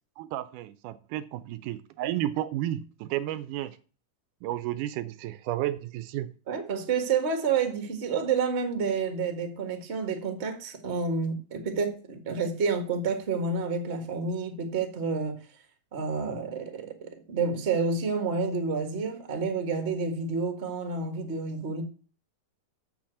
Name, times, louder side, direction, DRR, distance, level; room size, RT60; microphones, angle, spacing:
voice 1, 0.2-3.8 4.4-6.3, right 13 dB, 80° right, 2.1 m, -32 dB
voice 2, 6.5-15.4 15.9-21.8, right 5 dB, 35° right, 1.1 m, -29 dB
7.2 x 6.9 x 7.5 m
omnidirectional pair, 3.7 m